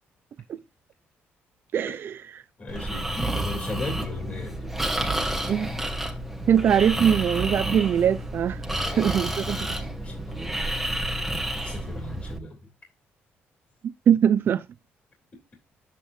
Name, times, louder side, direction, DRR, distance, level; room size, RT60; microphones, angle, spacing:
voice 1, 2.6-4.7 8.7-9.2 9.6-10.8 11.4-12.6, left 2 dB, 30° left, 3.5 m, -37 dB
Breathing, 2.7-12.4, right 1 dB, 5° right, 2.5 m, -30 dB
voice 2, 6.5-8.6 9.0-9.6 13.8-14.6, right 8 dB, 55° right, 0.6 m, -21 dB
10.0 x 8.5 x 2.7 m
cardioid pair, 120°, 4 cm